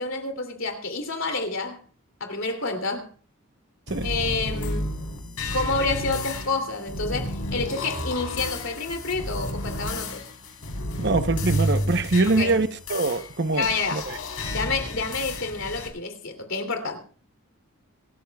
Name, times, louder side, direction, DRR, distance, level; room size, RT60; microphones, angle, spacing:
voice 1, 0.0-1.8 2.2-3.1 4.0-4.9 5.5-10.3 12.3-12.7 13.5-14.1 14.5-17.0, left 3 dB, 65° left, 2.9 m, -29 dB
sound 1, 3.9-15.9, left 1 dB, 85° left, 4.0 m, -31 dB
voice 2, 11.0-13.7 13.9-14.2, right 3 dB, 50° right, 0.9 m, -23 dB
26.5 x 13.5 x 2.3 m
head